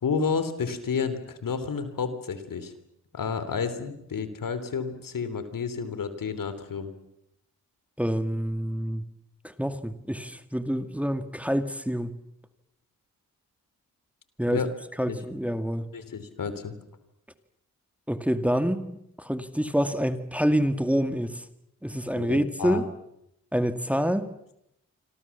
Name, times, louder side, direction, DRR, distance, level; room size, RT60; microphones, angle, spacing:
voice 1, 0.0-2.7 3.1-6.9 14.5-14.7 15.1-15.2 15.9-16.7 22.2-22.8, left 5 dB, 65° left, 12 dB, 3.4 m, -30 dB
voice 2, 8.0-9.0 9.4-12.1 14.4-14.6 15.0-15.8 18.1-18.8 19.2-21.4 21.8-22.9 23.5-24.3, equal, 5° right, 9 dB, 2.2 m, -27 dB
27.0 x 26.0 x 7.3 m, 0.79 s
supercardioid pair, 45°, 35 cm